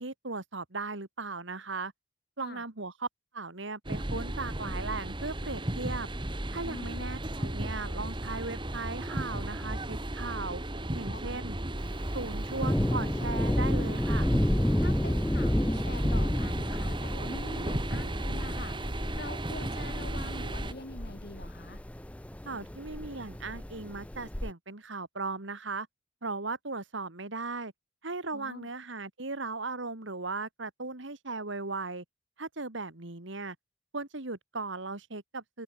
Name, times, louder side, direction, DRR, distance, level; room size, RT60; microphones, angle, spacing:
voice 1, 0.0-1.9 2.4-3.1 3.3-6.1 6.5-10.6 10.9-11.6 12.1-14.3 22.4-25.9 26.2-27.7 28.0-32.0 32.4-33.6 33.9-35.6, right 3 dB, 70° right, 2.1 m, -37 dB
sound 1, 3.8-20.7, right 1 dB, 25° right, 1.7 m, -35 dB
voice 2, 6.6-7.1 11.1-11.2 14.8-18.8 19.2-21.8 28.3-28.7, left 2 dB, 50° left, 6.3 m, -44 dB
Thunder, 11.8-24.5, left 1 dB, 5° left, 0.4 m, -31 dB
open air
head